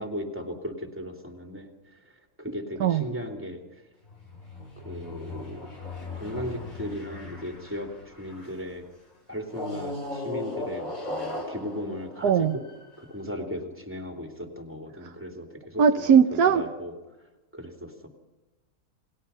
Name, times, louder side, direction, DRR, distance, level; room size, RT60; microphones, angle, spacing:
voice 1, 0.0-3.8 4.8-5.6 6.1-8.9 9.3-12.6 13.0-16.1 16.5-16.9 17.5-18.1, left 1 dB, 5° right, 3 dB, 2.9 m, -37 dB
sound 1, 4.0-8.7 9.5-13.1, left 2 dB, 55° left, 5.4 m, -38 dB
voice 2, 12.2-12.6 15.8-16.6, right 7 dB, 80° right, 8 dB, 1.4 m, -19 dB
30.0 x 21.0 x 5.7 m, 1.2 s
omnidirectional pair, 1.7 m